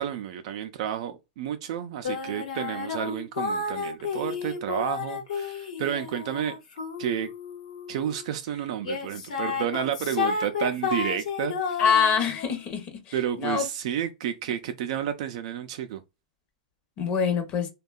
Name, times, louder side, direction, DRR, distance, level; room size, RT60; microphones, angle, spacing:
voice 1, 0.0-6.5 7.0-7.3 7.9-11.8 13.1-16.0, right 9 dB, 60° right, 0.4 m, -31 dB
sound 1, 2.0-8.3 8.8-12.5, left 5 dB, 80° left, 0.9 m, -32 dB
voice 2, 11.8-12.9 13.4-13.6 17.0-17.7, left 7 dB, 35° left, 0.7 m, -24 dB
2.7 x 2.2 x 2.2 m
hypercardioid pair, 135°, 4 cm